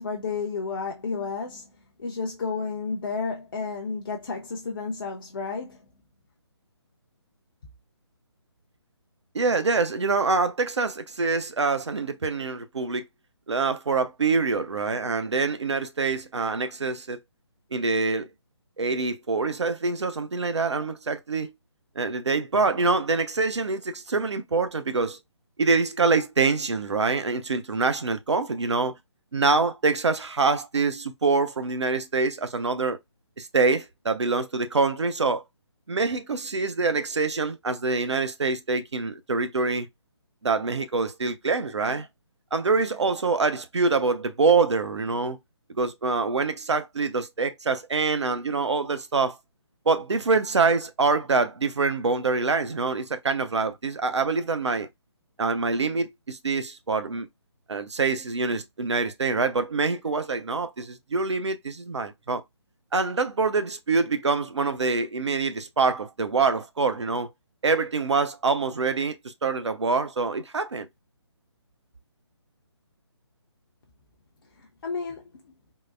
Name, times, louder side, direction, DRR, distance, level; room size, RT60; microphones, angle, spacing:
voice 1, 0.0-1.7 2.0-5.8 74.8-75.2, left 4 dB, 50° left, 0.6 m, -31 dB
voice 2, 9.3-13.0 13.5-17.2 17.7-18.3 18.8-21.5 22.0-25.2 25.6-28.9 29.3-33.0 33.4-35.4 35.9-39.9 40.4-42.1 42.5-45.4 45.8-49.4 49.9-54.9 55.4-57.3 57.7-62.4 62.9-67.3 67.6-70.9, right 4 dB, 75° right, 0.6 m, -25 dB
3.8 x 2.0 x 2.5 m
figure-of-eight pair, 145°, 15 cm